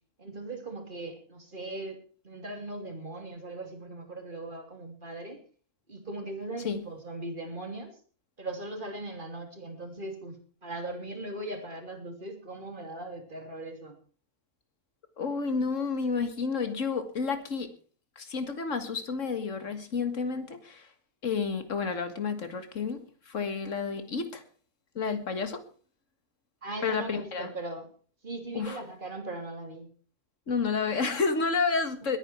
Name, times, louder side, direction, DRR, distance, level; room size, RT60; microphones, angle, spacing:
voice 1, 0.2-2.0 2.2-5.4 5.9-8.0 8.4-14.0 26.6-27.9 28.2-29.9, right 2 dB, 35° right, 4 dB, 3.2 m, -39 dB
voice 2, 15.2-17.7 18.2-20.9 21.2-24.4 25.0-25.6 26.8-27.5 28.5-28.8 30.5-32.2, left 5 dB, 65° left, 8 dB, 2.1 m, -30 dB
21.5 x 9.7 x 4.5 m, 0.41 s
omnidirectional pair, 1.4 m